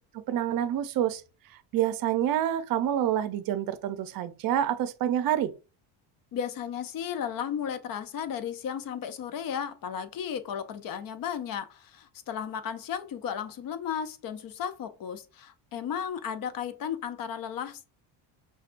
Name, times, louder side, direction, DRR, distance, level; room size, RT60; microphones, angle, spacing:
voice 1, 0.3-1.2 1.7-5.5, right 11 dB, 50° right, 0.6 m, -27 dB
voice 2, 6.3-17.9, left 8 dB, 45° left, 0.6 m, -34 dB
5.7 x 2.3 x 2.5 m
cardioid pair, 115°, 47 cm